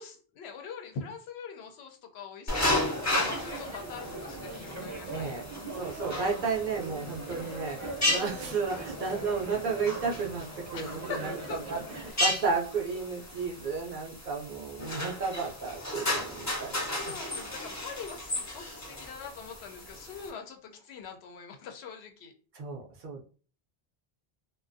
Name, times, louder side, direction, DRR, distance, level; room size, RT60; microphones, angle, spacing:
voice 1, 0.0-5.5 7.3-7.5 9.1-9.2 10.7-11.6 11.9-12.2 16.7-22.3, left 6 dB, 85° left, 5 dB, 0.8 m, -43 dB
sound 1, 2.5-20.3, left 1 dB, 25° left, 0.4 m, -35 dB
sound 2, 2.9-12.1, right 2 dB, 20° right, 0.6 m, -41 dB
voice 2, 5.1-5.4 5.7-11.3 11.7-11.8 12.2-17.1 22.5-23.2, right 5 dB, 60° right, 0 dB, 0.6 m, -33 dB
2.4 x 2.2 x 2.5 m, 0.40 s
omnidirectional pair, 1.0 m